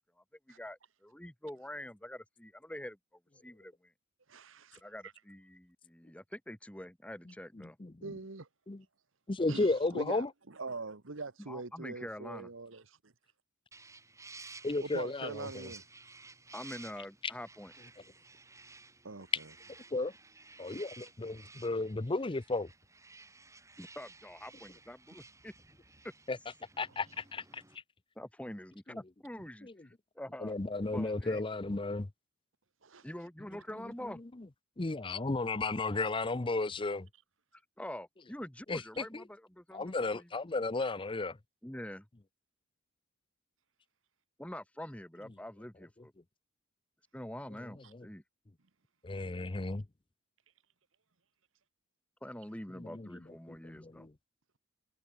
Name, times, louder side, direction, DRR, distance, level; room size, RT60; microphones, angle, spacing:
voice 1, 0.2-3.0 3.4-3.9 4.8-7.8 11.4-12.5 16.5-17.7 23.8-25.5 26.0-26.1 28.2-30.6 30.9-31.4 33.0-34.2 37.5-40.3 41.6-42.1 44.4-46.1 47.1-48.2 52.2-54.1, left 1 dB, 5° left, 1.4 m, -45 dB
voice 2, 4.3-4.8 8.0-8.5 9.5-13.1 14.8-15.8 19.0-19.3 32.8-33.0, right 3 dB, 75° right, 1.4 m, -43 dB
voice 3, 7.5-7.9 8.7-8.8 9.3-10.3 14.6-15.7 19.9-20.1 20.6-22.7 26.3-26.4 26.8-27.6 28.9-29.0 29.6-29.7 30.4-32.1 34.8-37.1 38.7-39.2 39.7-41.4 47.9-48.0 49.0-49.8 52.8-53.1 53.5-54.1, left 3 dB, 25° left, 0.7 m, -34 dB
sound 1, 13.7-27.8, right 3 dB, 15° right, 7.8 m, -55 dB
head